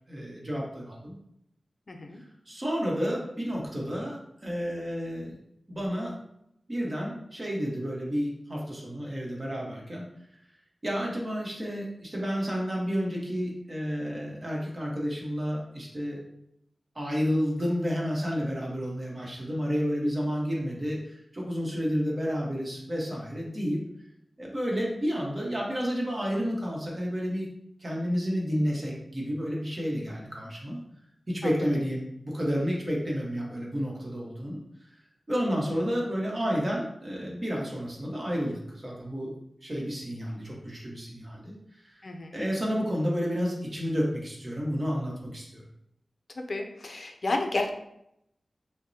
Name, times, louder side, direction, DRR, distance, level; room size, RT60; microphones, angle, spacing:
voice 1, 0.1-1.1 2.5-5.4 5.7-6.2 6.7-10.0 10.8-16.2 16.9-23.8 24.4-27.5 27.8-30.8 31.3-34.6 35.3-39.3 39.6-42.0 42.3-45.6, equal, 35° right, -3 dB, 1.2 m, -31 dB
voice 2, 1.9-2.2 31.4-31.6 42.0-42.4 46.4-47.7, left 2 dB, 60° left, 3 dB, 0.5 m, -32 dB
6.2 x 2.2 x 2.7 m, 0.78 s
wide cardioid pair, 85°, 0 cm